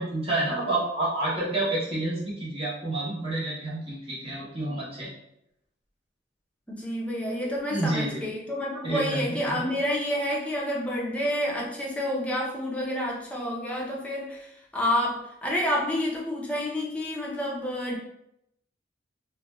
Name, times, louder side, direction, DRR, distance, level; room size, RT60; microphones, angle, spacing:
voice 1, 0.0-5.1 7.7-8.2 8.8-9.7, right 2 dB, 30° right, -8 dB, 0.8 m, -29 dB
voice 2, 6.7-18.0, left 1 dB, 5° left, -3 dB, 0.5 m, -29 dB
2.4 x 2.2 x 2.9 m, 0.78 s
head